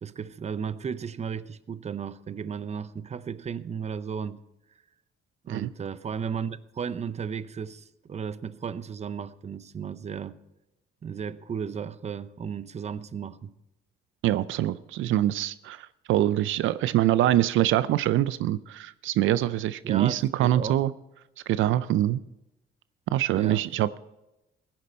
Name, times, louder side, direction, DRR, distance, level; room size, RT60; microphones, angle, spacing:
voice 1, 0.0-4.4 5.4-10.4 11.0-13.5 19.8-20.8 23.4-23.6, right 7 dB, 35° right, 0.6 m, -34 dB
voice 2, 14.2-20.9 21.5-22.2 23.1-24.0, right 13 dB, 80° right, 0.4 m, -24 dB
16.0 x 10.5 x 4.3 m
cardioid pair, 90°, 20 cm